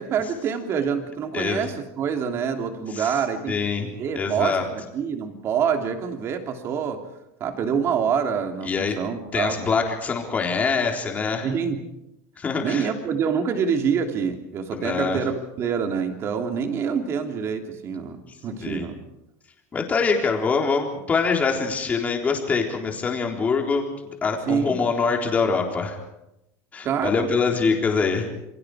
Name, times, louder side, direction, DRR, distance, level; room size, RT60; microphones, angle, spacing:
voice 1, 0.0-7.0 7.4-9.7 11.4-11.8 12.6-19.0 24.5-24.8 26.8-27.3, right 7 dB, 35° right, 5 dB, 3.0 m, -26 dB
voice 2, 1.3-1.6 2.9-3.2 3.5-3.9 4.2-4.6 8.6-8.9 9.3-11.5 12.4-12.9 14.7-15.2 18.6-18.9 19.7-23.8 24.2-26.0 26.7-28.3, left 5 dB, 20° left, 2 dB, 3.8 m, -24 dB
28.5 x 23.5 x 5.0 m, 0.87 s
supercardioid pair, 155°, 8 cm